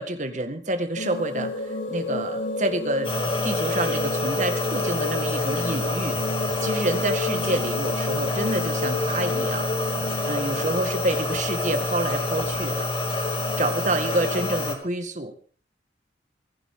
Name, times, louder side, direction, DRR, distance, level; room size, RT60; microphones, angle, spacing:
voice 1, 0.0-3.1 3.4-6.2 6.6-9.7 10.2-12.9 13.6-15.3, right 1 dB, 40° right, 7 dB, 1.9 m, -28 dB
sound 1, 1.0-14.7, left 2 dB, 80° left, 4.7 m, -32 dB
sound 2, 3.0-14.8, left 2 dB, 30° left, 2.7 m, -27 dB
26.5 x 11.5 x 3.8 m, 0.42 s
head